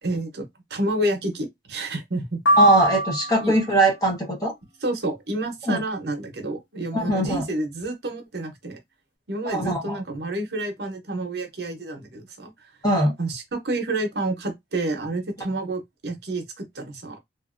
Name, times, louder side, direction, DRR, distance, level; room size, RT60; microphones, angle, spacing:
voice 1, 0.0-2.4 3.4-3.5 4.8-8.8 9.3-12.7 13.2-17.2, right 2 dB, 65° right, 0.8 m, -29 dB
sound 1, 2.5-3.7, right 1 dB, 85° left, 0.6 m, -22 dB
voice 2, 2.6-4.5 5.7-5.8 6.9-7.4 9.4-10.0 12.8-13.1, right 1 dB, 20° left, 1.0 m, -21 dB
2.7 x 2.5 x 2.5 m
head